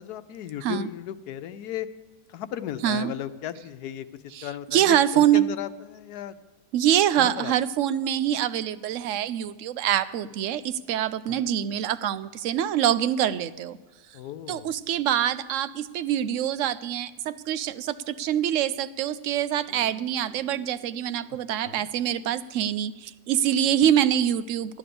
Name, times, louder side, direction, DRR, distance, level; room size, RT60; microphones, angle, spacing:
voice 1, 0.0-1.9 2.3-4.1 4.4-6.3 7.2-7.5 11.3-11.4 14.1-14.7 21.6-21.9, left 11 dB, 90° left, 11 dB, 1.2 m, -35 dB
voice 2, 4.3-5.5 6.7-13.8 14.5-24.8, right 10 dB, 65° right, 15 dB, 0.8 m, -25 dB
sound 1, 17.8-23.5, right 1 dB, 25° right, 5.2 m, -57 dB
13.5 x 10.0 x 6.8 m, 1.1 s
omnidirectional pair, 1.6 m